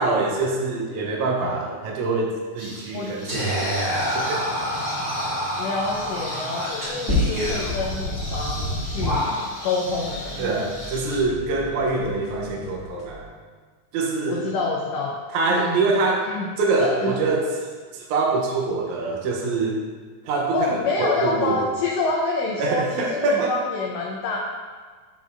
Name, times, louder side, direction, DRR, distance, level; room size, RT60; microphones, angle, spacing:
voice 1, 0.0-4.5 10.4-13.3 13.9-14.5 15.3-16.3 16.6-19.8 20.2-21.7 22.6-23.6, right 3 dB, 80° right, -1 dB, 2.1 m, -25 dB
sound 1, 2.6-11.2, left 1 dB, 15° right, 1.2 m, -37 dB
Whispering, 3.3-9.7, equal, 30° right, 1.9 m, -26 dB
voice 2, 5.6-10.5 14.3-15.1 15.5-15.8 16.3-16.5 16.8-17.2 20.5-24.4, left 3 dB, 75° left, -2 dB, 1.5 m, -27 dB
sound 2, 9.8-13.6, equal, 60° left, 1.5 m, -41 dB
6.8 x 6.2 x 2.5 m, 1.5 s
omnidirectional pair, 3.5 m